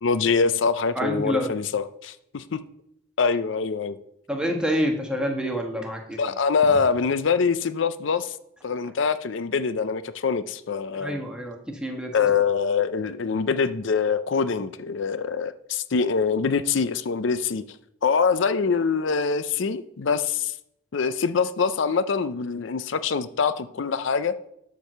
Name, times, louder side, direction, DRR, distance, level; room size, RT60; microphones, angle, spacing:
voice 1, 0.0-2.6 3.2-4.0 6.2-8.4 8.6-11.2 12.1-17.6 18.0-20.5 20.9-24.4, left 5 dB, 70° left, 13 dB, 0.5 m, -24 dB
voice 2, 0.9-1.5 4.3-6.2 10.9-12.1, equal, 5° right, 1 dB, 1.3 m, -27 dB
11.5 x 4.7 x 6.6 m, 0.79 s
head